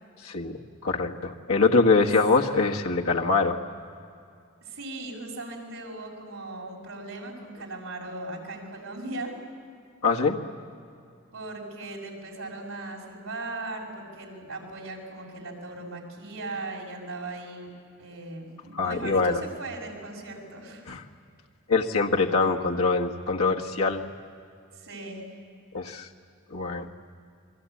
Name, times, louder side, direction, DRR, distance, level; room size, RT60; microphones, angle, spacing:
voice 1, 0.2-0.6 0.8-3.6 10.0-10.4 18.7-19.4 20.9-21.0 21.7-24.1 25.7-26.1 26.5-26.9, left 4 dB, 90° left, 1 dB, 1.6 m, -23 dB
voice 2, 4.6-9.3 11.3-17.7 18.0-20.8 24.7-25.2, right 2 dB, 75° right, 0 dB, 6.6 m, -38 dB
30.0 x 22.5 x 8.5 m, 2.4 s
head